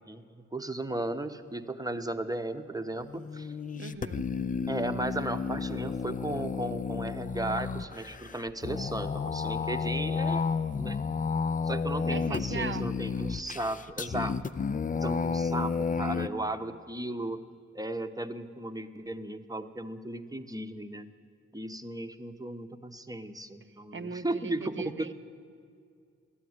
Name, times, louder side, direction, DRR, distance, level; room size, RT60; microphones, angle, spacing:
voice 1, 0.0-3.5 4.7-10.4 10.7-11.0 11.6-14.4 15.0-17.4 17.7-21.1 21.5-25.1, right 2 dB, 10° right, 8 dB, 0.8 m, -35 dB
sound 1, 3.0-16.3, left 5 dB, 30° left, 0.4 m, -32 dB
voice 2, 3.8-4.2 12.1-12.9 23.9-25.1, right 5 dB, 40° right, 10 dB, 0.7 m, -38 dB
12.5 x 8.6 x 9.5 m, 2.3 s
cardioid pair, 45°, 30 cm